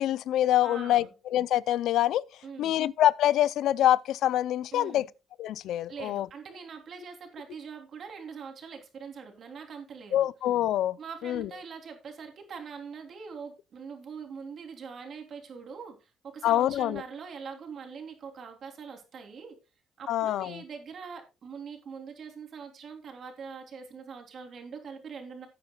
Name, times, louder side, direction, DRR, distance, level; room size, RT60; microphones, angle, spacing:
voice 1, 0.0-1.0 1.3-2.2 2.6-5.1 5.4-6.3 10.1-11.0 11.2-11.5 16.4-17.0 20.1-20.6, left 12 dB, 85° left, 0.4 m, -25 dB
voice 2, 0.6-1.1 2.4-2.8 4.7-5.1 5.9-10.3 11.0-19.6 20.0-25.5, right 6 dB, 60° right, 3.1 m, -43 dB
17.0 x 9.0 x 2.3 m
cardioid pair, 90°, 0 cm